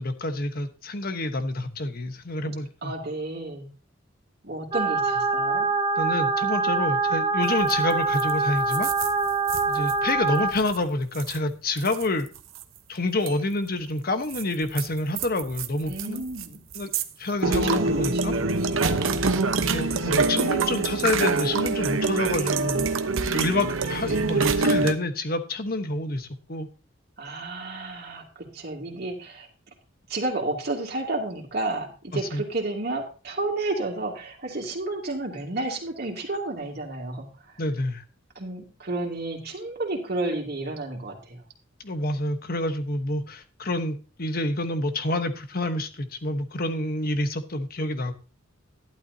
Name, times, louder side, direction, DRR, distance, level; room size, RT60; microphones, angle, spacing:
voice 1, 0.0-2.9 6.0-8.9 9.7-12.3 12.9-16.2 16.7-16.9 17.2-18.3 19.6-22.9 23.2-26.7 32.3-32.4 37.6-38.0 41.8-48.1, left 2 dB, 50° left, 9 dB, 1.1 m, -28 dB
voice 2, 2.8-3.7 4.4-5.7 15.9-16.6 17.4-18.5 18.8-19.4 27.2-29.5 30.1-37.6 38.3-41.4, right 2 dB, 50° right, 0 dB, 2.6 m, -31 dB
sound 1, 4.7-10.5, right 3 dB, 25° right, 1.8 m, -24 dB
sound 2, 7.6-7.9 8.2-8.3 8.6-9.9 10.5-10.8 11.1-11.4 11.8-12.6 13.3-13.4 14.3-16.5 16.7-17.0 17.4-24.9, right 4 dB, 85° right, 0.9 m, -25 dB
12.0 x 11.5 x 2.8 m, 0.34 s
head